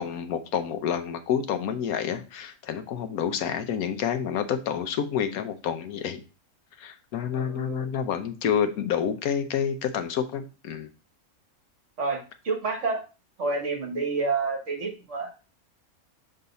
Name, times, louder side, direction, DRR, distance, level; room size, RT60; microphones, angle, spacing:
voice 1, 0.0-6.2 6.8-10.9, left 8 dB, 80° left, 9 dB, 1.2 m, -28 dB
voice 2, 7.3-7.9 12.0-13.0 13.4-15.3, right 4 dB, 55° right, 2 dB, 1.7 m, -29 dB
6.6 x 3.9 x 4.0 m, 0.33 s
omnidirectional pair, 1.5 m